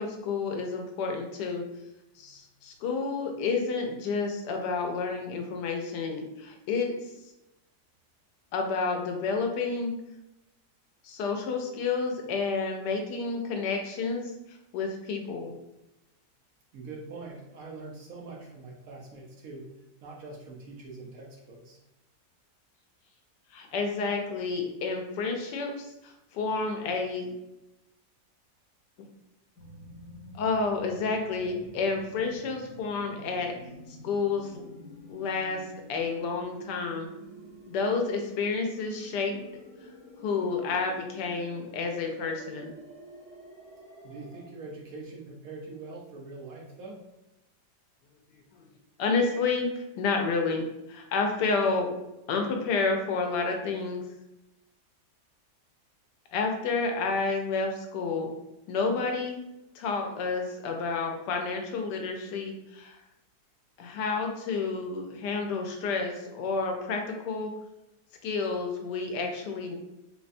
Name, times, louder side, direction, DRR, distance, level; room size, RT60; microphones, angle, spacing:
voice 1, 0.0-1.6 2.2-6.9 8.5-9.9 11.0-14.3 14.7-15.5 23.5-27.3 30.3-33.6 34.0-34.7 35.1-37.1 37.7-39.4 40.2-42.7 49.0-51.9 52.3-54.0 56.3-58.3 58.7-59.4 59.7-63.0 63.8-67.5 68.2-69.8, left 4 dB, 85° left, 3 dB, 1.2 m, -30 dB
voice 2, 16.7-19.7 20.0-21.8 44.0-47.0, right 3 dB, 65° right, -1 dB, 0.9 m, -43 dB
sound 1, 29.5-44.4, equal, 15° right, 1.0 m, -48 dB
4.0 x 2.1 x 2.5 m, 0.92 s
omnidirectional pair, 1.8 m